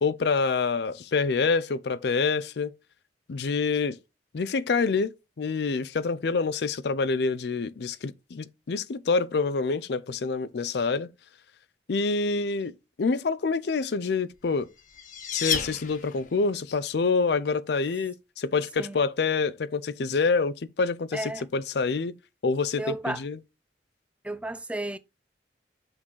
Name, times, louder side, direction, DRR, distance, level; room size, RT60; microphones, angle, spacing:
voice 1, 0.0-2.7 3.3-4.0 4.3-11.1 11.9-12.7 13.0-14.7 15.3-22.2 22.4-23.4, left 4 dB, 60° left, 0.4 m, -27 dB
sound 1, 14.4-16.5, left 7 dB, 45° left, 1.1 m, -32 dB
voice 2, 21.1-21.5 22.8-23.2 24.2-25.0, right 1 dB, 5° right, 0.3 m, -33 dB
6.1 x 3.9 x 4.5 m
head